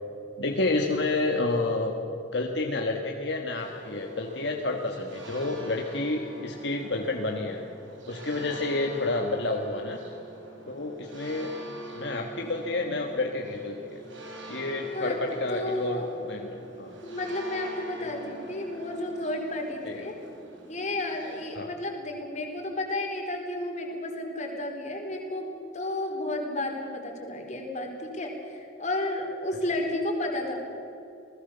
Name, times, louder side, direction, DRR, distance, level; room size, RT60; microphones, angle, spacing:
voice 1, 0.4-2.0 2.3-7.6 8.1-10.0 10.7-11.5 11.9-14.0 14.5-16.5 16.8-16.9 18.0-18.1 19.8-20.0 21.5-21.7, left 2 dB, 60° left, 1 dB, 1.7 m, -29 dB
sound 1, 3.6-21.5, right 1 dB, 75° right, 5.8 m, -45 dB
voice 2, 15.5-16.2 16.5-16.7 17.0-20.1 20.7-30.6, left 1 dB, 35° left, 2 dB, 4.1 m, -32 dB
29.0 x 19.5 x 7.0 m, 2.9 s
head